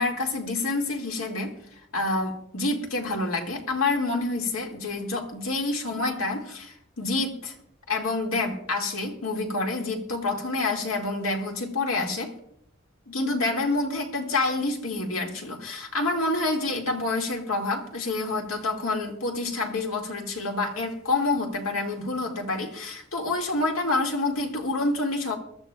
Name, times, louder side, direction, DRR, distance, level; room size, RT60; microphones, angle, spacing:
voice 1, 0.0-1.5 1.9-7.5 7.9-12.3 13.1-25.4, left 2 dB, 90° left, 2.0 m, -28 dB
22.5 x 13.0 x 2.3 m
head